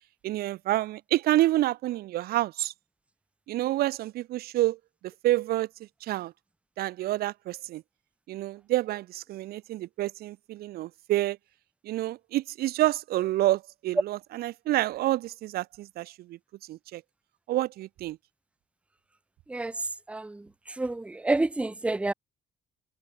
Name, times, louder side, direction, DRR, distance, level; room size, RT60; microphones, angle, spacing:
voice 1, 0.2-2.7 3.5-5.7 6.0-6.3 6.8-7.8 8.3-11.4 11.8-16.4 16.7-17.0 17.5-18.2, right 15 dB, 65° right, 0.5 m, -28 dB
voice 2, 20.1-20.4 20.8-22.1, right 2 dB, 5° right, 0.6 m, -28 dB
cardioid pair, 110°, 17 cm